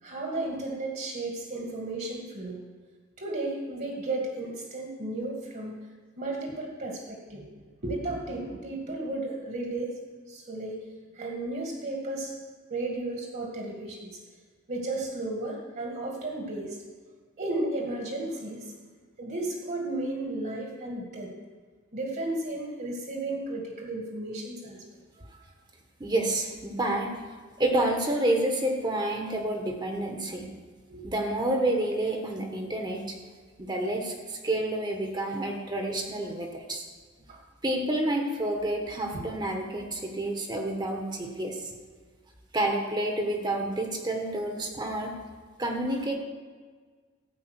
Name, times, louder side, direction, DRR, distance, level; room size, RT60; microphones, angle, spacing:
voice 1, 0.0-2.6 3.2-5.7 6.2-7.5 7.8-9.9 10.3-10.8 11.1-12.3 12.7-14.2 14.7-16.8 17.4-18.7 19.2-21.3 21.9-24.8 30.9-31.0 37.3-37.4 39.1-39.2, right 2 dB, 45° right, 0 dB, 1.8 m, -34 dB
voice 2, 26.0-27.1 27.6-30.5 31.0-33.1 33.6-36.8 37.6-41.7 42.5-45.1 45.6-46.1, right 1 dB, 20° right, 2 dB, 1.2 m, -29 dB
13.5 x 5.4 x 8.1 m, 1.5 s
head